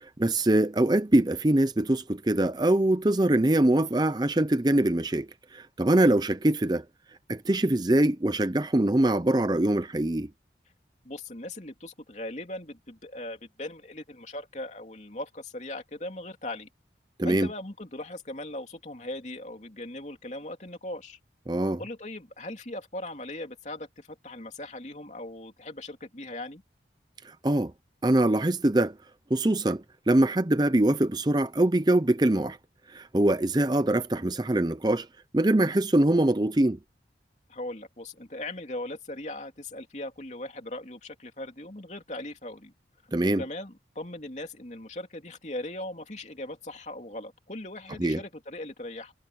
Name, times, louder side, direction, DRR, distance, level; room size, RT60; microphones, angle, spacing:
voice 1, 0.0-6.9 7.3-10.3 17.2-17.5 21.5-21.8 27.2-27.7 28.0-29.0 29.3-32.6 32.9-35.1 35.3-36.8 43.1-43.4 48.0-48.2, right 1 dB, 25° right, 0.6 m, -23 dB
voice 2, 11.0-16.7 17.2-21.2 21.8-26.6 37.5-42.7 43.4-49.1, left 1 dB, 40° left, 3.1 m, -39 dB
head